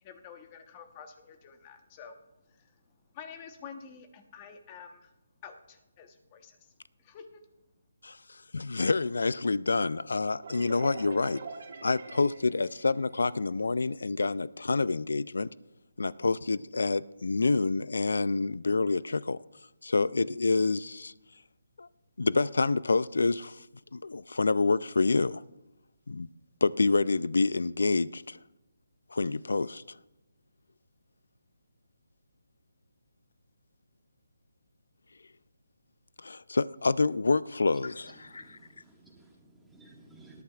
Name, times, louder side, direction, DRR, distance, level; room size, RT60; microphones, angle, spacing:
voice 1, 0.0-2.2 3.1-5.1 5.4-6.6 7.0-7.2, left 7 dB, 20° left, 7 dB, 1.0 m, -48 dB
voice 2, 8.0-11.4 11.8-15.5 16.0-19.4 19.8-21.1 21.8-21.9 22.2-23.7 23.9-25.4 26.1-26.3 26.6-28.4 29.1-29.8 36.2-38.6, left 3 dB, 80° left, 19 dB, 0.3 m, -27 dB
sound 1, 10.4-13.9, right 4 dB, 55° right, 1.7 m, -44 dB
voice 3, 38.2-40.4, right 2 dB, 5° right, -3 dB, 1.7 m, -56 dB
19.0 x 11.5 x 2.4 m, 0.95 s
hypercardioid pair, 170°, 0 cm